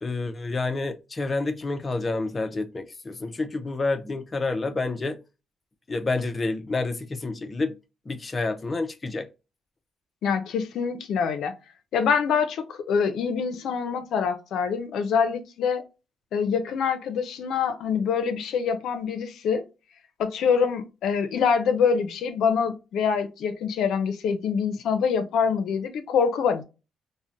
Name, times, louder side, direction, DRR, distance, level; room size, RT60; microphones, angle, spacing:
voice 1, 0.0-5.2 5.9-7.8 8.1-9.3, left 3 dB, 30° left, 0.4 m, -29 dB
voice 2, 10.2-11.5 11.9-15.8 16.3-19.6 20.2-26.6, left 6 dB, 75° left, 0.5 m, -25 dB
3.6 x 2.1 x 2.6 m
cardioid pair, 90°, 0 cm